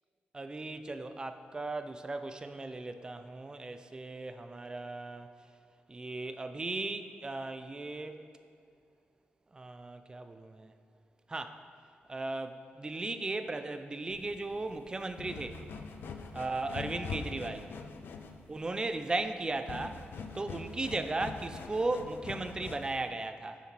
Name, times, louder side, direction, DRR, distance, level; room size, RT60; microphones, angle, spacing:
voice 1, 0.3-5.3 5.9-8.2 9.5-10.7 11.3-11.6 12.1-15.6 16.3-17.7 18.5-20.0 20.3-23.6, right 2 dB, 25° right, 9 dB, 0.5 m, -36 dB
sound 1, 14.1-23.1, left 4 dB, 75° left, 0.6 m, -43 dB
9.8 x 7.1 x 4.5 m, 2.5 s
wide cardioid pair, 135°, 4 cm